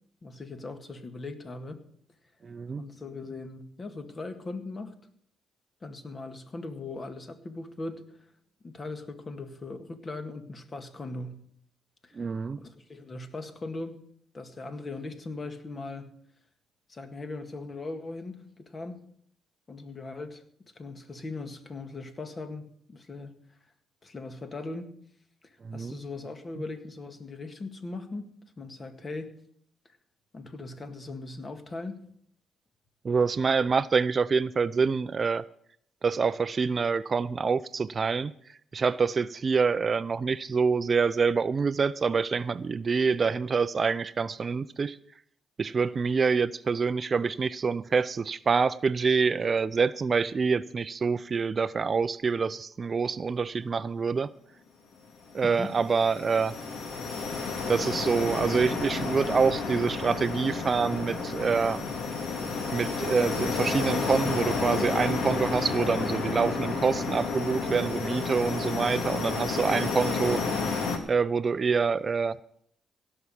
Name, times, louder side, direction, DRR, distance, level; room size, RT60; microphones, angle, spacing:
voice 1, 0.2-1.8 2.8-4.9 5.8-8.0 8.6-11.4 12.0-12.2 12.6-14.0 14.3-16.1 16.9-19.0 19.7-20.4 20.8-23.4 24.0-24.9 25.7-29.3 30.3-32.0 55.4-55.7, left 3 dB, 35° left, 8 dB, 1.9 m, -39 dB
voice 2, 2.4-2.8 12.1-12.6 25.6-26.0 33.0-35.4 36.0-45.0 45.6-54.3 55.3-56.5 57.7-61.8 62.7-70.4 71.1-72.4, right 5 dB, 40° right, 16 dB, 0.5 m, -26 dB
sound 1, 55.3-71.0, left 4 dB, 70° left, 2.1 m, -31 dB
17.0 x 6.0 x 8.5 m, 0.65 s
cardioid pair, 90°, 0 cm